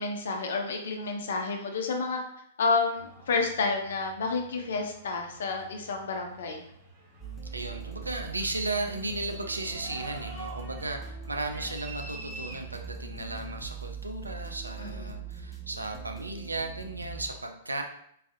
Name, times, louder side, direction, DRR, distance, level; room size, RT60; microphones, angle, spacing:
voice 1, 0.0-2.2 2.6-6.6 14.8-15.2, left 4 dB, 65° left, 3 dB, 0.6 m, -30 dB
sound 1, 2.9-12.9, right 2 dB, 45° right, 1.0 m, -47 dB
sound 2, 7.2-17.3, right 5 dB, 10° left, 0.6 m, -41 dB
voice 2, 7.5-17.8, right 2 dB, 90° right, 4 dB, 0.4 m, -35 dB
3.9 x 2.5 x 2.5 m, 0.71 s
figure-of-eight pair, 105°, 0 cm